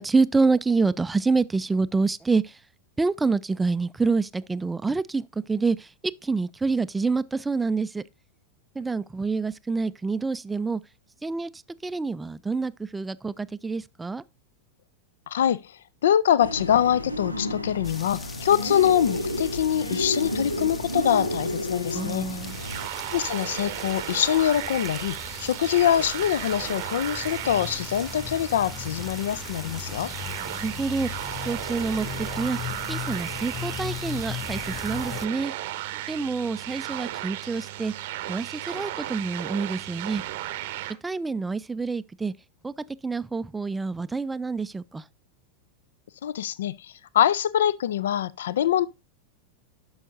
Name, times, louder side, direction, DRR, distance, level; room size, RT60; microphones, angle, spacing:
voice 1, 0.0-2.6 3.0-5.9 6.2-8.0 8.8-10.8 11.2-11.5 11.8-14.2 21.9-22.6 30.6-31.1 31.5-32.6 32.9-35.5 36.1-37.9 38.3-40.2 41.0-42.3 42.6-42.7 43.0-45.0, right 4 dB, 10° right, 0.3 m, -27 dB
voice 2, 15.3-15.7 16.0-22.3 23.1-30.1 46.2-48.9, left 10 dB, 60° left, 0.3 m, -24 dB
sound 1, 16.4-22.9, left 1 dB, 90° left, 0.8 m, -31 dB
sound 2, 17.8-35.3, left 7 dB, 20° left, 0.8 m, -38 dB
sound 3, 22.3-40.9, right 14 dB, 50° right, 0.7 m, -35 dB
10.5 x 6.3 x 2.6 m
figure-of-eight pair, 90°, 0 cm